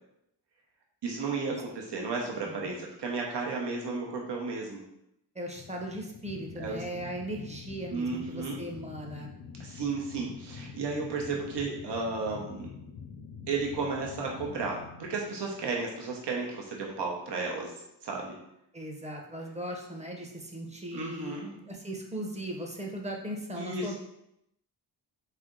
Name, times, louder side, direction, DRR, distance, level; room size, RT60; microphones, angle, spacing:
voice 1, 1.0-4.8 6.6-6.8 7.9-8.6 9.6-12.7 13.5-17.7 18.0-18.4 20.9-21.5 23.6-23.9, right 4 dB, 75° right, -1 dB, 0.9 m, -33 dB
voice 2, 5.3-9.3 18.7-23.9, right 1 dB, 15° right, 1 dB, 0.7 m, -38 dB
sound 1, 5.5-16.5, left 5 dB, 85° left, 0.6 m, -46 dB
3.9 x 3.3 x 3.7 m, 0.80 s
wide cardioid pair, 100°, 42 cm